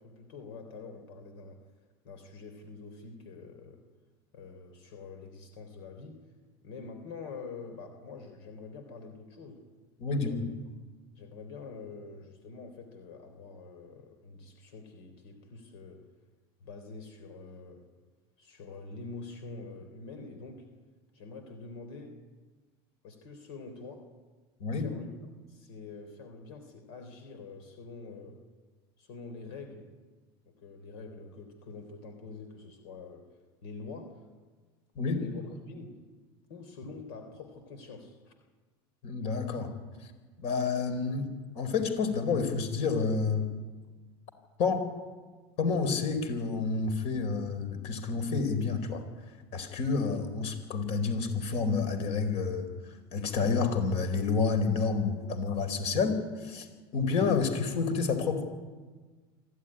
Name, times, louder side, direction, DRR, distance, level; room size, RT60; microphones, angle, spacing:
voice 1, 0.0-1.6 2.0-3.8 4.3-6.2 6.6-9.6 10.1-10.4 11.2-16.0 16.6-17.8 18.4-20.6 21.1-22.2 23.0-24.0 24.8-25.1 25.5-28.4 29.0-29.9 30.5-33.2 33.6-34.2 35.0-35.9 36.5-38.4, left 4 dB, 75° left, 6 dB, 3.5 m, -45 dB
voice 2, 10.0-10.4 24.6-24.9 34.9-35.2 39.0-39.7 40.0-40.1 40.4-41.3 41.5-43.5 44.6-44.9 45.6-49.0 49.5-56.7 56.9-58.5, left 4 dB, 55° left, 9 dB, 4.3 m, -29 dB
24.5 x 15.0 x 10.0 m, 1.4 s
supercardioid pair, 120°, 13 cm